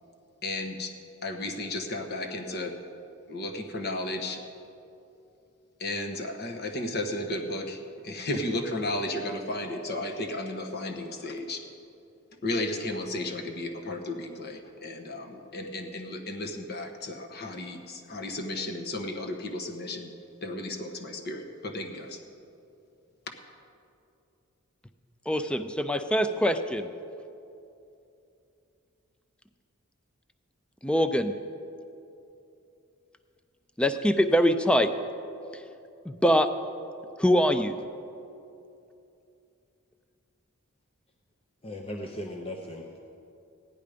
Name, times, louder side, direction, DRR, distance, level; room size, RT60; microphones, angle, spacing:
voice 1, 0.4-0.9 1.2-2.7 3.3-4.4 5.8-11.6 12.4-20.1 20.4-22.2, left 1 dB, 45° left, 4 dB, 1.2 m, -34 dB
voice 2, 25.3-26.9 30.8-31.3 33.8-34.9 35.5-35.6 36.0-36.5 37.2-37.7, equal, 5° left, 9 dB, 0.4 m, -23 dB
voice 3, 41.6-43.0, left 1 dB, 25° left, 1 dB, 0.7 m, -37 dB
15.5 x 11.0 x 5.1 m, 2.7 s
head